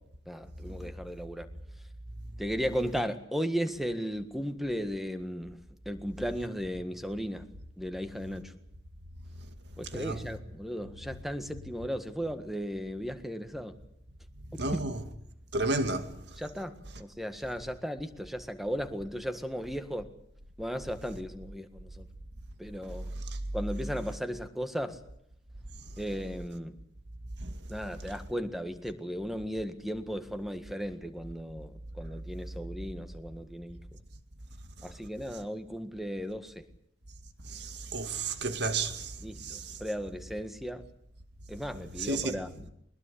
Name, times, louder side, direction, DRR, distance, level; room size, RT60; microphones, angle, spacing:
voice 1, 0.3-1.5 2.4-5.6 5.8-7.5 7.8-8.5 9.8-13.7 14.7-14.8 16.4-20.1 20.6-22.0 22.6-23.1 23.5-25.0 26.0-26.8 27.7-31.7 32.0-33.8 34.8-36.5 39.2-40.8 41.5-42.7, equal, ahead, 1.7 m, -35 dB
voice 2, 14.6-15.0 15.5-16.4 23.2-23.4 27.4-27.5 37.4-39.8 42.0-42.4, right 3 dB, 65° right, 2.2 m, -32 dB
22.0 x 20.5 x 8.5 m
head